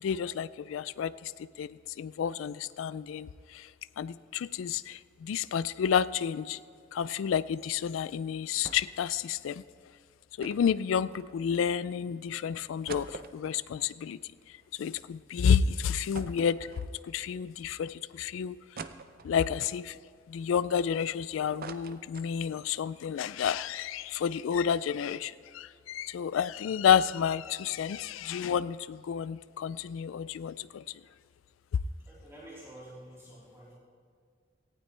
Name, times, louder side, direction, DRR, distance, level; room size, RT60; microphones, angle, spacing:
voice 1, 0.0-3.7 4.0-6.6 6.9-9.6 10.4-14.2 14.8-16.7 17.0-18.6 19.2-20.0 20.3-30.8, left 7 dB, 85° left, 17 dB, 0.3 m, -30 dB
sound 1, 8.6-9.1 9.3-9.4 10.4-11.7 12.2-12.3 12.6-15.1 15.4-15.5 16.1-17.3 17.8-17.9 18.8-19.6 20.1-21.1 21.4-22.7 23.1-23.2 23.4-23.6, right 4 dB, 50° right, 0.6 m, -46 dB
voice 2, 32.0-33.8, right 1 dB, 15° right, -9 dB, 3.7 m, -49 dB
18.0 x 15.5 x 3.3 m, 2.2 s
head